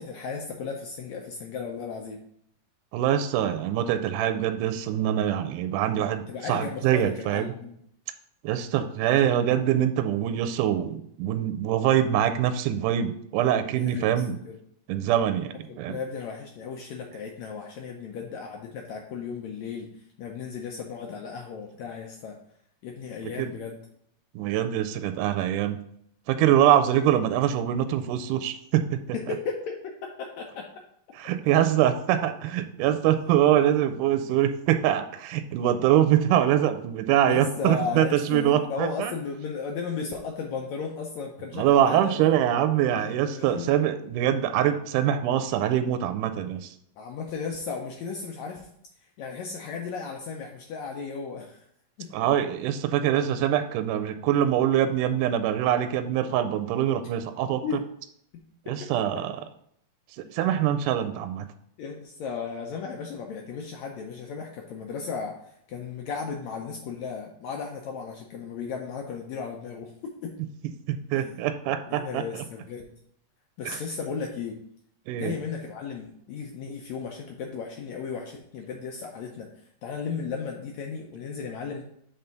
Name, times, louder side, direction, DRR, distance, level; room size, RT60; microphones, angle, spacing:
voice 1, 0.0-2.2 6.3-7.8 13.7-14.6 15.7-22.4 22.8-23.8 29.1-29.7 30.2-30.6 37.3-42.2 43.0-43.8 47.0-48.7 49.2-51.7 52.0-52.1 57.6-57.8 61.8-69.9 70.2-70.3 71.1-71.4 71.9-72.9 73.6-74.6 75.2-81.8, left 5 dB, 80° left, 1 dB, 1.6 m, -35 dB
voice 2, 2.9-7.5 8.4-14.4 14.9-16.0 23.4-23.5 24.4-25.8 26.3-29.0 31.2-39.1 41.5-46.7 52.1-57.6 58.7-59.3 60.3-61.5 70.9-72.2 73.7-73.8 75.1-75.3, right 11 dB, 80° right, 8 dB, 1.9 m, -24 dB
6.7 x 3.6 x 5.7 m, 0.70 s
omnidirectional pair, 4.0 m